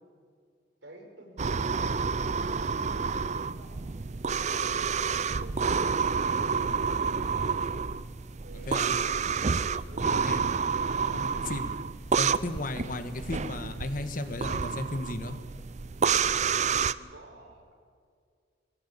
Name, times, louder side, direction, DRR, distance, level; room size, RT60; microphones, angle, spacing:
voice 1, 0.8-7.7 8.4-8.9 9.8-10.2 10.8-11.2 16.7-17.7, right 2 dB, 80° right, 0 dB, 5.8 m, -51 dB
sound 1, 1.4-16.9, right 5 dB, 40° right, 0.5 m, -29 dB
voice 2, 8.5-8.9 10.0-10.5 11.1-11.8 12.2-15.4, left 1 dB, 50° left, 8 dB, 1.6 m, -35 dB
22.5 x 15.5 x 8.5 m, 2.1 s
head